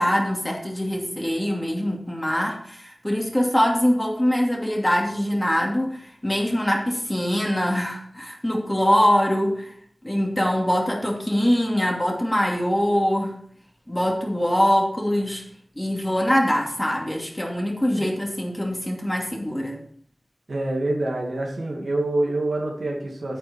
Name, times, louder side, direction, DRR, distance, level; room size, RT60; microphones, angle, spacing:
voice 1, 0.0-9.7 10.0-13.4 13.9-15.4 15.8-19.8, equal, 15° left, -1 dB, 2.7 m, -23 dB
voice 2, 20.5-23.4, right 2 dB, 85° right, -1 dB, 2.5 m, -26 dB
9.3 x 7.9 x 4.6 m, 0.62 s
wide cardioid pair, 60°, 0 cm